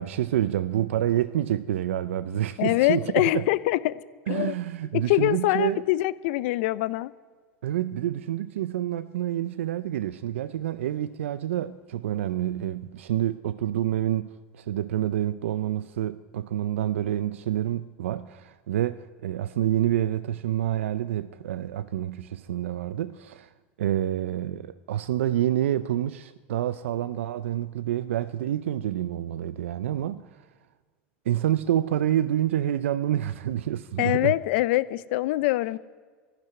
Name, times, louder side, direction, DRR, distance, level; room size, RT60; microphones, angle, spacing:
voice 1, 0.0-3.5 4.3-5.8 7.6-23.5 23.8-30.3 31.3-34.3, right 12 dB, 85° right, 0.4 m, -28 dB
voice 2, 2.6-4.0 4.3-4.5 4.9-7.1 34.0-35.8, left 17 dB, 70° left, 0.6 m, -24 dB
12.0 x 10.5 x 9.5 m
hypercardioid pair, 95°, 7 cm